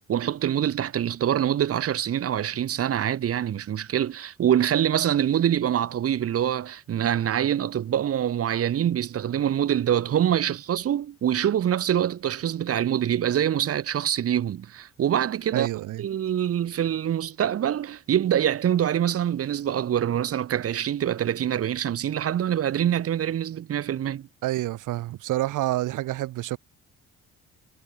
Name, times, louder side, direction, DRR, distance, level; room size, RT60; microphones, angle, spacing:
voice 1, 0.1-15.7 16.0-24.3, right 10 dB, 50° right, 0.9 m, -25 dB
voice 2, 15.5-16.0 24.4-26.6, right 15 dB, 90° right, 3.5 m, -28 dB
cardioid pair, 90°, 30 cm